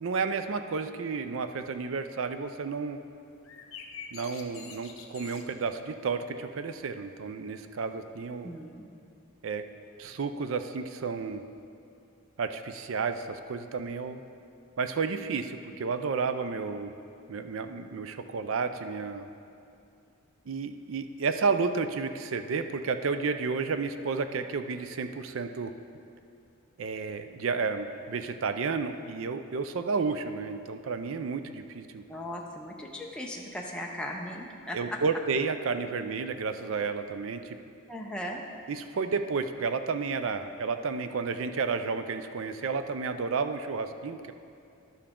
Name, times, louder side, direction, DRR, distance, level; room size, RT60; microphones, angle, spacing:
voice 1, 0.0-3.0 4.1-8.5 9.4-9.6 10.0-11.4 12.4-14.2 14.8-16.9 17.3-19.3 20.5-25.7 26.8-32.0 34.7-37.6 38.7-44.3, right 4 dB, 70° right, 9 dB, 0.4 m, -31 dB
sound 1, 3.3-8.6, left 6 dB, 70° left, 0.7 m, -49 dB
voice 2, 8.4-8.8 32.1-35.0 37.9-38.4, left 1 dB, 5° left, -1 dB, 0.5 m, -37 dB
11.5 x 6.9 x 3.7 m, 2.5 s
head